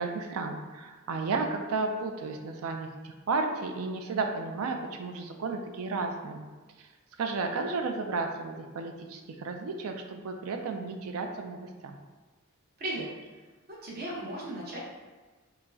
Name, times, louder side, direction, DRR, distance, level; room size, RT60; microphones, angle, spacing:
voice 1, 0.0-6.5 6.8-6.9 7.2-12.0, right 3 dB, 85° right, 4 dB, 0.4 m, -33 dB
voice 2, 13.7-14.8, right 1 dB, 45° right, -4 dB, 0.9 m, -36 dB
4.4 x 2.0 x 2.7 m, 1.3 s
head